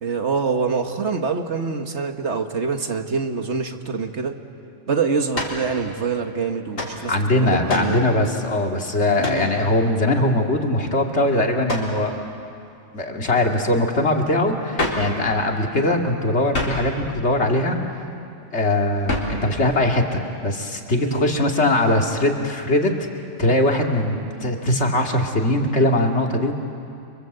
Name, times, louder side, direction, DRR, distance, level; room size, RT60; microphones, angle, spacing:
voice 1, 0.0-4.4 4.9-8.0 9.2-9.5 21.0-21.3, right 5 dB, 60° right, 6 dB, 1.7 m, -25 dB
sound 1, 5.3-5.6 6.7-7.0 7.7-8.0 9.2-9.5 11.7-12.0 14.7-15.1 16.5-16.9 19.1-19.4, left 1 dB, 90° left, 4.3 m, -26 dB
voice 2, 7.1-12.1 12.9-17.8 18.5-22.9 23.4-26.5, left 1 dB, 60° left, 2 dB, 2.5 m, -21 dB
30.0 x 25.0 x 8.0 m, 2.5 s
omnidirectional pair, 1.3 m